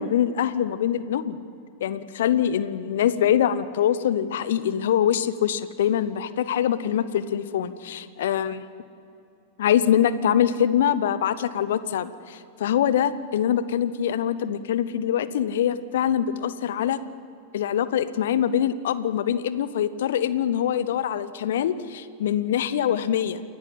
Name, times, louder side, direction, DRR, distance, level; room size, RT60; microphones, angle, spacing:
voice 1, 0.0-1.4 1.8-8.7 9.6-17.0 17.5-23.4, left 9 dB, 60° left, 15 dB, 0.9 m, -24 dB
28.5 x 11.5 x 8.4 m, 2.7 s
figure-of-eight pair, 90°, 0 cm